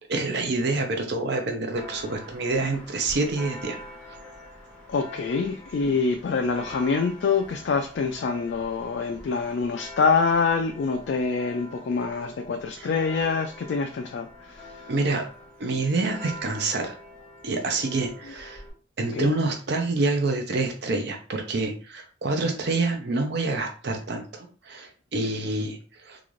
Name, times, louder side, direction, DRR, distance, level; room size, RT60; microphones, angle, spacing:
voice 1, 0.1-3.8 4.1-4.2 12.8-12.9 14.9-15.3 15.6-17.0 17.4-18.6 19.0-26.2, right 3 dB, 55° right, 0.5 m, -27 dB
Church bell, 1.7-18.7, equal, 5° left, 0.9 m, -45 dB
voice 2, 4.9-14.9 19.1-19.3, left 4 dB, 60° left, 0.3 m, -26 dB
3.7 x 2.4 x 3.1 m
head